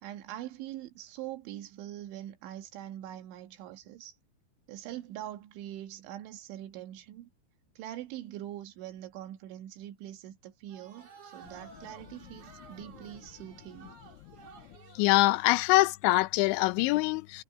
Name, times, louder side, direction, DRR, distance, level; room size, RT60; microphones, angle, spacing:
voice 1, 0.0-4.2 4.7-7.3 7.8-13.9, right 12 dB, 90° right, 3.9 m, -43 dB
sound 1, 10.7-15.6, right 4 dB, 45° right, 4.7 m, -54 dB
voice 2, 15.0-17.4, left 20 dB, 85° left, 2.9 m, -24 dB
omnidirectional pair, 5.2 m